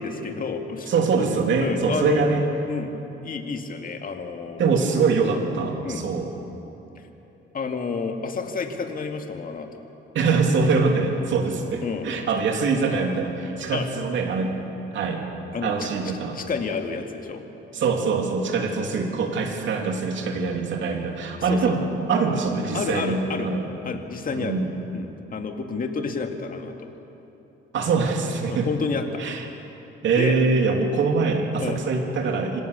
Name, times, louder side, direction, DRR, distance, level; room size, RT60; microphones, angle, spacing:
voice 1, 0.0-0.9 1.6-2.3 2.7-2.9 3.2-4.9 5.8-6.0 7.0-7.1 7.5-9.8 11.8-12.1 13.7-13.9 15.5-17.4 21.5-21.7 22.7-23.5 23.8-24.6 24.9-26.9 28.5-29.2 30.2-30.4 31.6-31.8, left 5 dB, 45° left, 4 dB, 2.2 m, -30 dB
voice 2, 0.9-2.4 4.6-6.3 10.1-14.5 14.9-15.2 15.6-16.4 17.7-21.8 22.1-23.7 24.3-24.7 27.7-28.7 29.2-29.4 30.0-32.6, right 4 dB, 70° right, 2 dB, 2.9 m, -23 dB
26.0 x 17.0 x 6.9 m, 3.0 s
cardioid pair, 90°, 20 cm